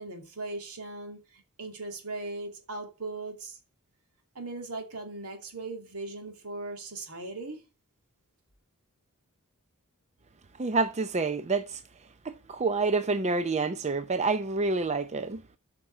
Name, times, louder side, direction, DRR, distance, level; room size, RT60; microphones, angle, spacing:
voice 1, 0.0-3.6 4.3-7.6, right 2 dB, 80° right, 2.6 m, -39 dB
voice 2, 10.6-11.8 12.2-15.4, right 3 dB, 30° right, 0.5 m, -28 dB
7.9 x 5.9 x 7.6 m
head